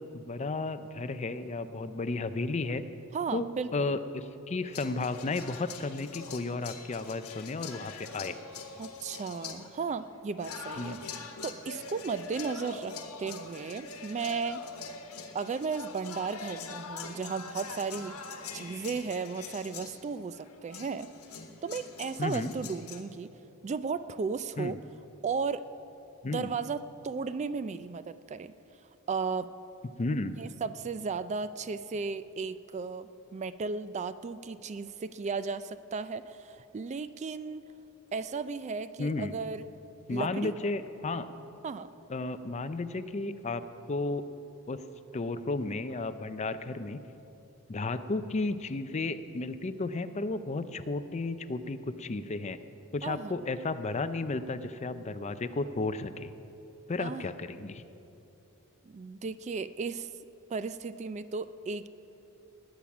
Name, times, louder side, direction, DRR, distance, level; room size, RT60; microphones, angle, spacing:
voice 1, 0.0-2.8 3.3-3.5 3.7-8.4 10.8-11.0 22.2-22.5 24.6-24.8 26.2-26.5 30.0-30.3 39.0-39.3 40.1-41.3 42.1-43.6 43.9-44.2 44.7-44.8 45.1-47.0 47.7-52.6 52.9-56.3 56.9-57.8, left 3 dB, 30° left, 11 dB, 0.5 m, -33 dB
voice 2, 3.1-4.0 8.8-11.0 11.4-14.6 15.3-18.2 18.5-21.1 21.6-23.3 23.6-24.8 25.2-25.6 26.2-28.5 29.1-29.5 30.4-37.6 38.1-39.6 40.1-40.5 41.6-41.9 53.0-53.4 57.0-57.2 58.8-60.1 60.5-61.9, right 5 dB, 30° right, 13 dB, 0.3 m, -35 dB
sound 1, 4.7-23.0, left 5 dB, 85° left, 1.3 m, -44 dB
19.5 x 8.6 x 6.0 m, 2.9 s
head